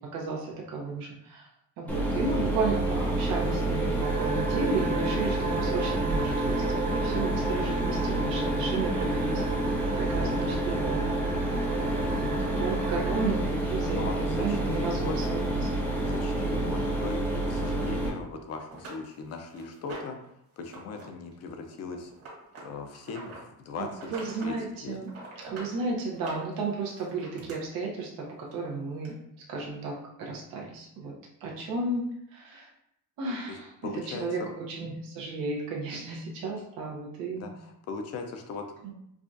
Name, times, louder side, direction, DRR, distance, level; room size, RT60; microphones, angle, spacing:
voice 1, 0.1-1.5 1.8-9.5 10.0-11.1 12.1-15.6 16.4-16.7 23.8-25.1 25.4-31.1 31.4-32.0 32.3-32.7 33.2-37.5 38.8-38.9, right 3 dB, 80° right, -2 dB, 1.0 m, -33 dB
Mechanisms, 1.9-18.1, right 1 dB, 5° left, 0.8 m, -28 dB
sound 1, 4.0-13.3, right 4 dB, 25° right, 0.4 m, -35 dB
voice 2, 12.0-12.5 13.8-15.3 16.0-20.2 20.6-22.1 22.6-24.1 24.4-24.6 24.8-25.0 33.5-34.5 37.4-38.7, left 4 dB, 45° left, 5 dB, 0.6 m, -39 dB
sound 2, 18.2-18.3 18.7-20.3 20.6-21.1 21.3-23.4 23.9-24.5 24.9-25.7 26.1-27.6 28.5-28.6 29.1-29.2, right 3 dB, 45° right, 1.4 m, -44 dB
4.8 x 2.3 x 2.6 m, 0.78 s
cardioid pair, 150°, 34 cm